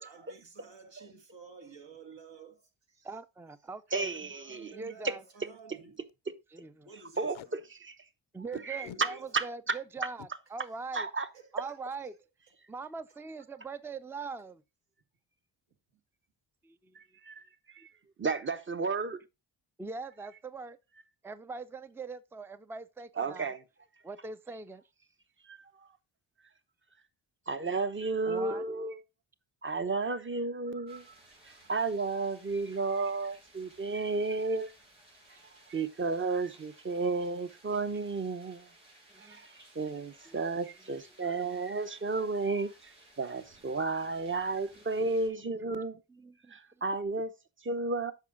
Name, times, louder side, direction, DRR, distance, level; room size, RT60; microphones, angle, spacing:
voice 1, 0.0-3.1 3.9-6.0 6.8-7.6 8.7-9.3 11.3-11.7 12.0-12.2, right 4 dB, 65° right, 2.3 m, -52 dB
voice 2, 3.0-4.1 4.7-5.2 6.5-6.9 8.3-11.1 11.5-12.1 12.7-14.6 16.6-16.9 17.8-17.9 19.8-20.8 21.2-23.5 24.0-24.8 28.2-28.6 39.1-39.4 40.3-40.4 44.8-44.9 46.1-46.5, right 4 dB, 5° right, 0.5 m, -42 dB
Packing tape duct tape, 3.5-3.7 4.1-4.2 4.4-4.6 5.1-5.2 5.4-5.6 5.9-6.1 7.1-7.5 8.5-9.0 10.0-10.3 11.9-12.0 12.4-12.6 12.8-13.2, left 14 dB, 80° left, 0.6 m, -50 dB
voice 3, 3.9-4.7 5.0-5.1 7.2-8.0 8.6-9.8 10.9-11.3 16.9-17.9 18.2-19.2 23.2-23.6 25.4-25.9 27.5-29.0 29.6-31.1 31.7-34.7 35.7-38.7 39.2-46.0 46.5-47.3 47.6-48.1, right 3 dB, 25° right, 0.9 m, -33 dB
sound 1, 30.9-45.3, right 1 dB, 90° right, 5.0 m, -59 dB
8.3 x 5.6 x 3.8 m
cardioid pair, 60°, 47 cm